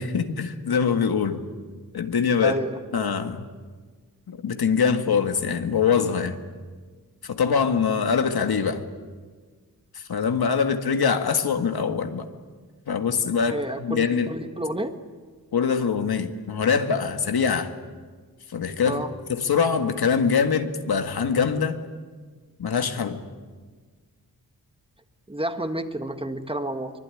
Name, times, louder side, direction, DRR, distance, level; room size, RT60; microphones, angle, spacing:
voice 1, 0.0-1.4 1.9-2.6 2.9-3.5 4.3-6.4 7.2-8.8 9.9-12.3 12.9-14.3 15.5-17.7 18.5-19.0 19.3-21.8 22.6-23.2, left 6 dB, 80° left, 6 dB, 2.0 m, -23 dB
voice 2, 2.4-2.8 13.5-14.9 18.9-19.2 25.3-26.9, right 1 dB, 15° right, 7 dB, 1.7 m, -30 dB
24.5 x 22.5 x 10.0 m, 1.5 s
wide cardioid pair, 105°, 37 cm